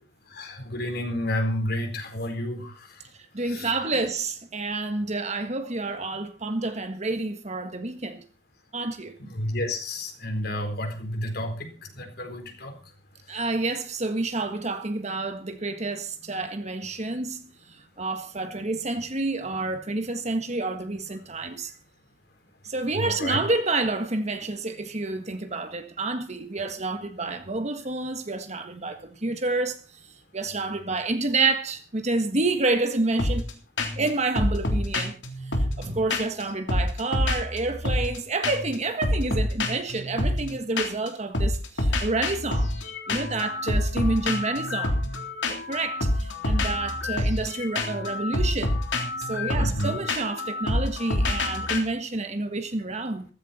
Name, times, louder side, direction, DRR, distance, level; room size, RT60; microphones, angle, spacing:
voice 1, 0.3-3.0 3.4-4.0 9.2-11.7 11.9-12.8 22.9-23.4 49.6-50.0, left 1 dB, 60° left, 4.2 m, -30 dB
voice 2, 3.3-8.2 8.7-9.1 13.3-21.7 22.7-29.8 30.3-33.4 33.9-35.1 35.8-42.7 43.1-45.0 45.5-48.8 49.3-53.3, right 3 dB, 40° right, 1.6 m, -29 dB
sound 1, 33.2-33.5 33.8-34.1 34.3-36.4 36.7-38.2 38.4-38.7 39.0-41.1 41.3-51.8, left 1 dB, 85° left, 3.5 m, -27 dB
15.0 x 15.0 x 4.3 m
head